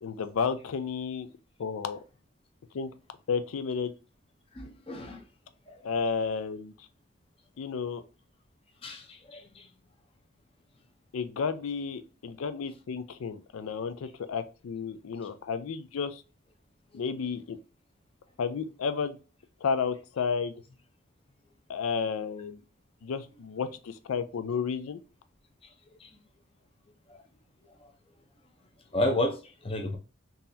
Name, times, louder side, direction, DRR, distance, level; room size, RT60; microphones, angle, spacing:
voice 1, 0.0-1.3 1.6-2.0 2.7-2.9 3.3-3.9 5.8-6.7 7.6-8.0 11.1-16.2 16.9-17.6 18.4-19.2 19.6-20.5 21.7-22.6 23.0-25.0, left 5 dB, 90° left, 0.4 m, -32 dB
voice 2, 4.5-5.2 8.8-9.7 26.0-26.1 28.9-30.0, left 1 dB, 25° left, 0.6 m, -31 dB
3.8 x 2.8 x 2.6 m
head